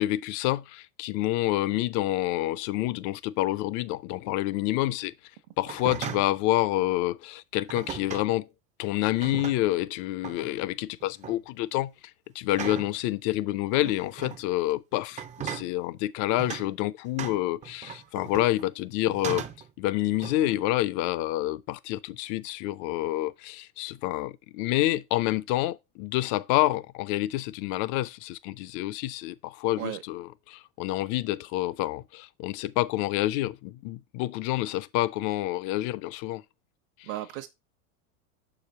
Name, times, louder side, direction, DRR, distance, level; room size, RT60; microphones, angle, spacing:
voice 1, 0.0-5.1 5.6-8.5 8.8-19.5 19.8-36.4 37.0-37.1, left 16 dB, 45° left, 0.5 m, -28 dB
sound 1, 5.6-6.4 7.7-8.3 9.0-9.8 10.2-10.5 11.0-11.4 12.5-13.0 13.7-14.4 15.1-15.7 16.4-16.7 17.2-18.7 19.1-19.7 20.2-20.6, right 8 dB, 20° right, 0.5 m, -37 dB
voice 2, 37.0-37.5, right 15 dB, 65° right, 1.1 m, -35 dB
6.4 x 5.0 x 4.2 m
hypercardioid pair, 110°, 42 cm